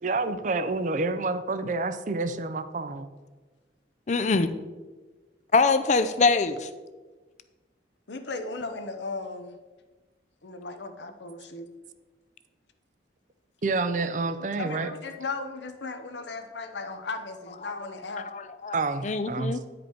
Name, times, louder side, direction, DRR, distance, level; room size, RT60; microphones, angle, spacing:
voice 1, 0.0-3.1 13.6-14.9 18.7-19.6, right 3 dB, 45° right, 11 dB, 0.5 m, -28 dB
voice 2, 4.1-4.5 5.5-6.7 18.6-18.8 19.0-19.6, left 4 dB, 40° left, 11 dB, 0.5 m, -23 dB
voice 3, 8.1-9.6 10.4-11.7 14.4-18.3, left 3 dB, 75° left, 7 dB, 0.8 m, -36 dB
9.5 x 5.1 x 4.5 m, 1.3 s
head